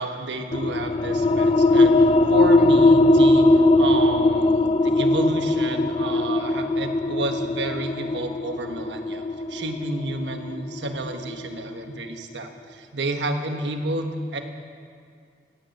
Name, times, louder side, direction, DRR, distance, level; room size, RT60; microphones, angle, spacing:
voice 1, 0.0-9.2 9.5-14.4, right 2 dB, 80° right, 5 dB, 1.4 m, -30 dB
sound 1, 0.5-11.7, left 2 dB, 30° left, 0.5 m, -20 dB
15.0 x 9.4 x 9.0 m, 2.2 s
head